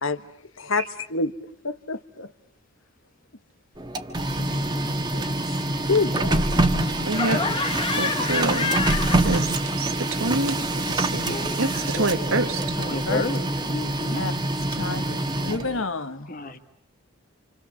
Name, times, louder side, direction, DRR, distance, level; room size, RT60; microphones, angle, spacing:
voice 1, 0.6-1.3 1.6-2.3 4.4-5.2 5.5-6.4 12.8-13.2 14.1-14.3 14.7-16.3, left 3 dB, 70° left, 11 dB, 1.5 m, -29 dB
Printer, 3.8-15.8, right 1 dB, 20° right, 1.6 m, -25 dB
voice 2, 7.0-7.5 8.0-8.8 9.1-12.8, right 2 dB, 85° right, 6 dB, 2.0 m, -27 dB
Laughter, 7.1-9.9 10.1-13.1, left 4 dB, 25° left, 1.5 m, -30 dB
voice 3, 11.2-11.7 12.0-12.1 12.9-14.2 16.3-16.6, left 2 dB, 40° left, 7 dB, 2.0 m, -32 dB
29.0 x 28.0 x 7.2 m, 0.65 s
head